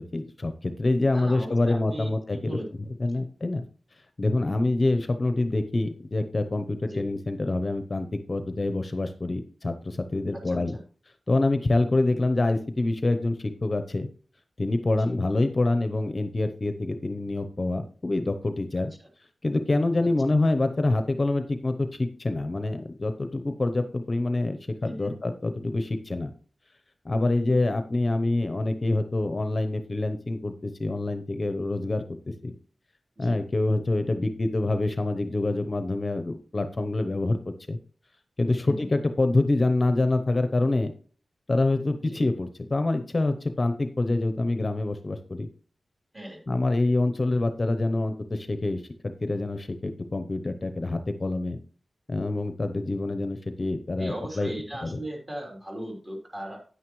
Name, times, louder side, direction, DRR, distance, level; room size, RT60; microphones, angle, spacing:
voice 1, 0.0-2.6 3.0-3.6 4.2-10.8 11.3-14.1 14.6-18.9 19.4-26.3 27.0-32.5 33.2-37.8 38.4-40.9 41.5-45.5 46.5-51.6 52.1-54.5 54.8-55.0, left 2 dB, 35° left, 8 dB, 0.8 m, -26 dB
voice 2, 1.1-2.7 3.1-3.2 6.9-7.1 10.5-10.8 15.0-15.2 19.0-19.1 20.0-20.1 24.8-25.1 33.2-33.4 38.6-38.9 42.1-42.2 46.1-46.4 54.0-56.6, right 1 dB, 25° right, 0 dB, 3.4 m, -37 dB
9.5 x 9.5 x 3.2 m, 0.41 s
wide cardioid pair, 95°, 0 cm